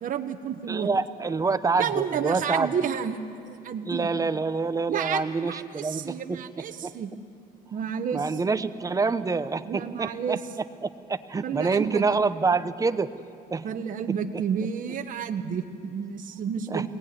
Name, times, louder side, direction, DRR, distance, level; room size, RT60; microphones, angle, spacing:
voice 1, 0.0-0.9 1.8-3.2 3.5-4.3 4.9-7.1 7.7-8.7 9.6-10.4 11.4-12.0 13.6-16.9, right 7 dB, 50° right, 6 dB, 1.2 m, -31 dB
voice 2, 0.7-2.7 3.9-6.4 6.8-6.9 8.1-10.4 10.8-13.1 13.5-13.7 16.7-16.9, right 4 dB, 20° right, 12 dB, 0.9 m, -26 dB
22.5 x 18.5 x 9.5 m, 2.4 s
cardioid pair, 110°, 17 cm